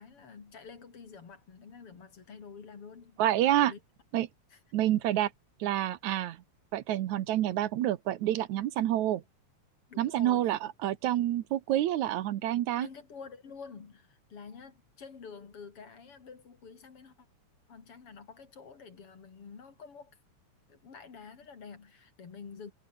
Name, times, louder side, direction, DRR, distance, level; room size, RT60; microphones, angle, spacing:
voice 1, 0.0-3.2 3.6-3.8 4.5-4.6 9.9-10.6 12.8-17.3 17.7-20.2 20.7-22.7, left 5 dB, 50° left, 3.6 m, -48 dB
voice 2, 3.2-3.7 4.1-4.3 4.7-5.3 5.6-6.4 6.7-9.2 10.0-12.9, right 13 dB, 75° right, 2.4 m, -28 dB
omnidirectional pair, 3.4 m